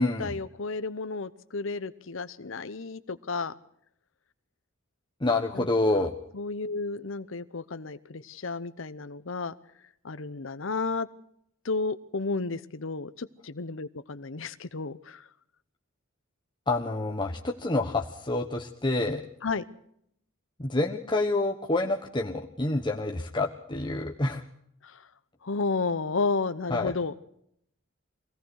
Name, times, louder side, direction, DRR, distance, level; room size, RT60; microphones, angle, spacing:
voice 1, 0.0-3.6 5.5-5.7 6.0-6.1 6.3-9.5 10.0-11.1 11.6-15.3 19.4-19.6 24.8-25.1 25.4-27.1, left 4 dB, 65° left, 12 dB, 0.8 m, -32 dB
voice 2, 5.2-6.1 16.7-19.2 20.6-24.4 26.7-26.9, left 2 dB, 20° left, 0 dB, 1.3 m, -27 dB
23.5 x 18.0 x 6.4 m, 0.72 s
head